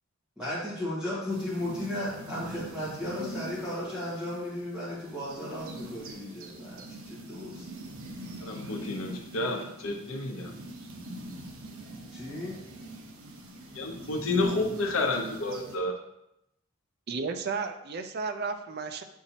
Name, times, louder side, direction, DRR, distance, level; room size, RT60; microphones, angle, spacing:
voice 1, 0.4-7.6 12.1-12.6, left 1 dB, 5° right, -10 dB, 1.7 m, -35 dB
sound 1, 1.3-15.8, right 1 dB, 85° right, 0.9 m, -43 dB
voice 2, 8.4-10.5 13.7-16.0, left 2 dB, 75° left, 2 dB, 0.8 m, -30 dB
voice 3, 17.1-19.0, right 4 dB, 50° right, 7 dB, 0.5 m, -33 dB
7.8 x 4.5 x 2.9 m, 0.82 s
head